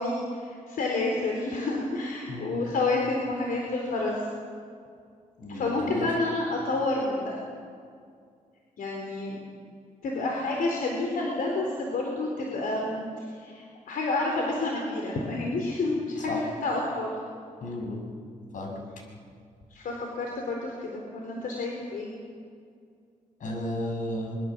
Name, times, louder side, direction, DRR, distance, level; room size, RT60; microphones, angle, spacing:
voice 1, 0.0-4.2 5.5-7.4 8.8-9.4 10.0-17.1 19.7-22.1, left 2 dB, 85° left, 0 dB, 4.1 m, -29 dB
voice 2, 2.3-2.6 5.4-6.1 16.3-16.4 17.6-18.1 18.5-18.8 23.4-24.4, left 1 dB, 70° left, 1 dB, 6.5 m, -33 dB
23.5 x 23.0 x 7.5 m, 2.2 s
wide cardioid pair, 130°, 14 cm